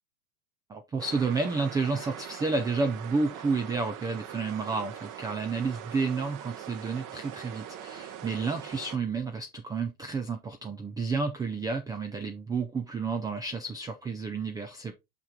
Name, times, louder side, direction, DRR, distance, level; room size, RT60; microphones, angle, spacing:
voice 1, 0.7-14.9, right 4 dB, 10° right, 0.3 m, -31 dB
sound 1, 1.0-9.0, right 10 dB, 40° right, 1.1 m, -42 dB
5.8 x 5.7 x 3.5 m
hypercardioid pair, 105°, 46 cm